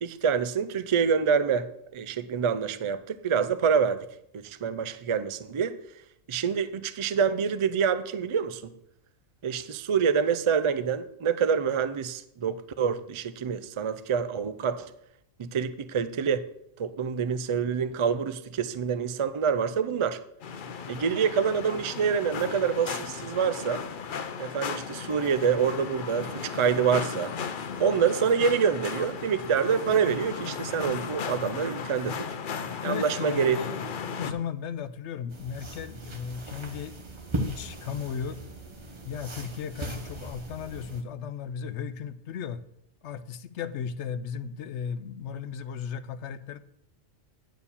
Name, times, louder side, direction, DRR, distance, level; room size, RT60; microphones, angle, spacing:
voice 1, 0.0-4.0 4.3-5.8 6.3-8.6 9.4-14.9 15.4-16.5 16.8-20.2 20.9-23.8 24.4-27.3 27.8-32.4 32.8-33.6, right 6 dB, 55° right, 13 dB, 0.3 m, -26 dB
sound 1, 20.4-34.3, left 6 dB, 50° left, 0.7 m, -36 dB
voice 2, 32.8-33.7 34.2-36.9 37.4-38.4 39.0-42.6 43.0-46.6, left 7 dB, 80° left, 14 dB, 0.9 m, -35 dB
sound 2, 35.3-41.0, right 1 dB, 25° right, 0.9 m, -38 dB
10.5 x 4.5 x 7.0 m, 0.77 s
omnidirectional pair, 1.2 m